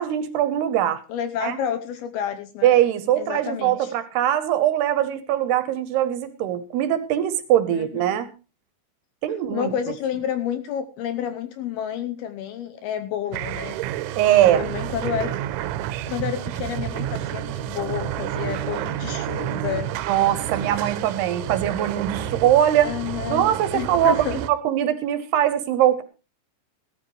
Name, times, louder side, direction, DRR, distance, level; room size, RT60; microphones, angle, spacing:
voice 1, 0.0-1.0 1.4-1.6 2.6-8.3 9.2-9.7 14.2-14.6 20.1-22.9 23.3-26.0, right 11 dB, 75° right, 12 dB, 2.7 m, -21 dB
voice 2, 1.1-2.7 3.2-3.9 7.7-8.1 9.5-13.8 14.6-15.3 16.1-19.9 22.8-23.5 23.7-24.4, left 9 dB, 75° left, 9 dB, 2.5 m, -30 dB
sound 1, 13.3-24.5, right 11 dB, 90° right, 3.2 m, -30 dB
17.5 x 13.5 x 3.1 m, 0.31 s
omnidirectional pair, 5.2 m